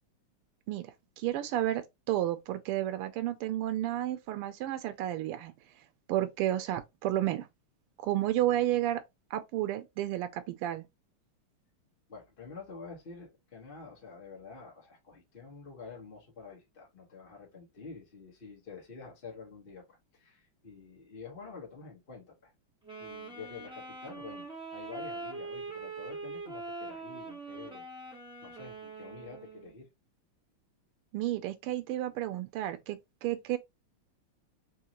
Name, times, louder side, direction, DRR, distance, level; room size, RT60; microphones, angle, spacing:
voice 1, 0.7-5.5 6.1-7.5 8.0-9.0 9.3-10.8 31.1-33.6, right 13 dB, 85° right, 1.5 m, -31 dB
voice 2, 12.1-22.5 23.0-27.9 28.4-29.9, left 4 dB, 30° left, 1.2 m, -48 dB
Wind instrument woodwind instrument, 22.8-29.8, right 3 dB, 5° right, 1.3 m, -43 dB
4.7 x 2.8 x 2.9 m
omnidirectional pair, 2.4 m